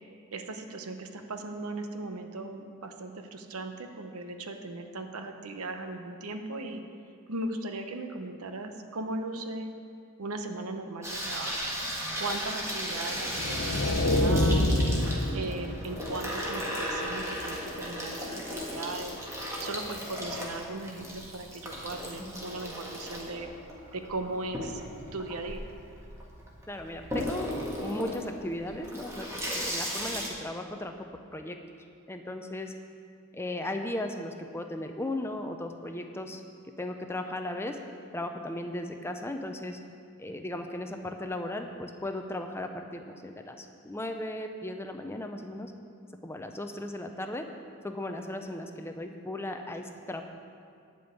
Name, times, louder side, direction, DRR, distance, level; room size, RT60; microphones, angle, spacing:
voice 1, 0.3-6.8 7.3-9.7 10.2-11.7 12.2-14.7 15.3-19.2 19.6-23.5 23.9-24.8 25.1-25.6, right 2 dB, 85° right, 6 dB, 0.9 m, -38 dB
Water tap faucet / Sink (filling or washing), 11.0-30.3, equal, 15° right, 1.6 m, -36 dB
sound 1, 13.2-16.2, left 1 dB, 60° left, 0.8 m, -26 dB
voice 2, 26.7-27.5 27.8-30.9 31.3-31.6 32.1-32.7 33.3-36.4 36.8-37.8 38.1-39.8 40.2-45.7 46.2-47.4 47.8-50.2, left 1 dB, 10° left, 5 dB, 0.6 m, -36 dB
11.5 x 5.4 x 8.3 m, 2.3 s
head